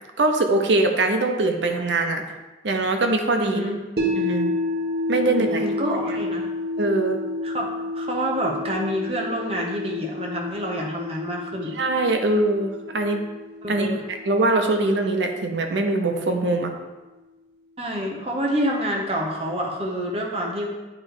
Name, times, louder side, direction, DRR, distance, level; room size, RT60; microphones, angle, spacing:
voice 1, 0.2-2.2 2.6-3.6 4.0-4.5 5.1-5.6 6.8-7.2 11.8-13.2 13.7-13.9 14.2-16.7, right 2 dB, 90° right, 5 dB, 0.7 m, -22 dB
voice 2, 3.4-3.8 5.2-6.5 7.4-7.7 7.9-11.8 13.6-14.0 17.8-20.7, equal, 35° right, -1 dB, 1.0 m, -27 dB
sound 1, 4.0-16.1, left 2 dB, 60° right, 1.2 m, -30 dB
8.5 x 3.2 x 4.9 m, 1.2 s
head